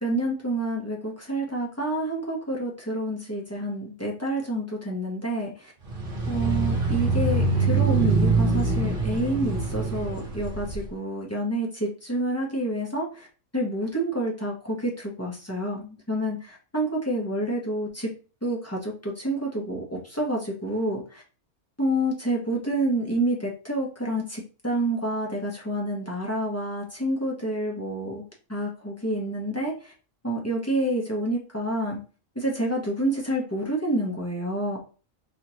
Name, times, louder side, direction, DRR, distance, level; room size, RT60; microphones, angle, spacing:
voice 1, 0.0-5.5 6.3-13.3 13.5-18.1 18.4-21.2 21.8-28.2 28.5-29.7 30.2-32.0 32.4-34.8, right 1 dB, 15° left, -2 dB, 0.8 m, -28 dB
sound 1, 5.9-10.8, right 3 dB, 45° right, 1.3 m, -24 dB
4.0 x 3.1 x 2.8 m, 0.35 s
omnidirectional pair, 1.3 m